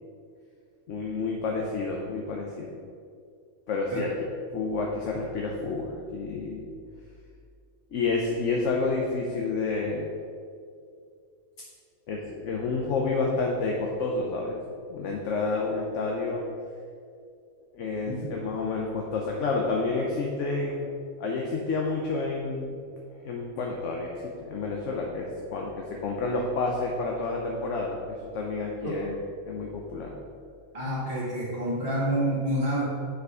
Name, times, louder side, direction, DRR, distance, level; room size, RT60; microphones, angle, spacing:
voice 1, 0.9-2.8 3.7-4.1 4.5-6.7 7.9-10.1 12.1-14.6 14.9-16.4 17.7-20.9 21.2-22.8 23.2-29.1 29.5-30.1, left 3 dB, 65° left, 0 dB, 1.0 m, -29 dB
voice 2, 30.7-32.8, right 1 dB, 25° right, -8 dB, 1.5 m, -28 dB
6.7 x 5.1 x 4.8 m, 2.3 s
omnidirectional pair, 1.5 m